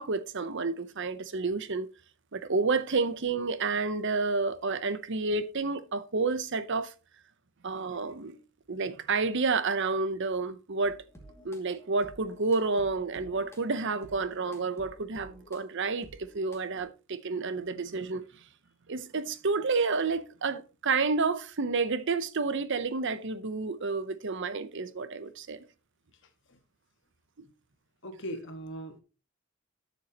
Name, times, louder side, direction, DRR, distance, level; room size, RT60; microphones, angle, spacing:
voice 1, 0.0-1.9 2.3-6.9 7.6-8.4 8.7-11.0 11.4-18.3 18.9-25.6 27.4-27.5, right 4 dB, 60° right, 0.8 m, -30 dB
sound 1, 10.8-16.8, right 1 dB, 15° left, 2.3 m, -53 dB
voice 2, 28.0-29.0, equal, 65° left, 1.7 m, -39 dB
12.5 x 7.0 x 2.9 m
head